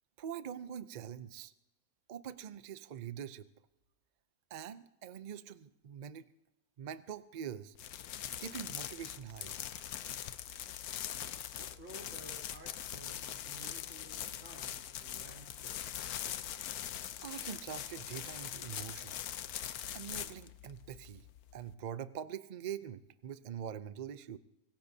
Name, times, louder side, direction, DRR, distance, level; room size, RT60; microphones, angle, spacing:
voice 1, 0.2-1.5 2.1-3.5 4.5-6.3 6.8-7.7 8.4-9.5 17.2-19.2 19.9-21.2 21.5-24.4, right 9 dB, 80° right, 13 dB, 0.3 m, -44 dB
sound 1, 7.8-21.7, left 10 dB, 80° left, 1.2 m, -42 dB
voice 2, 11.5-15.8, right 1 dB, 55° right, -1 dB, 4.1 m, -54 dB
24.5 x 18.5 x 2.7 m, 0.93 s
omnidirectional pair, 1.6 m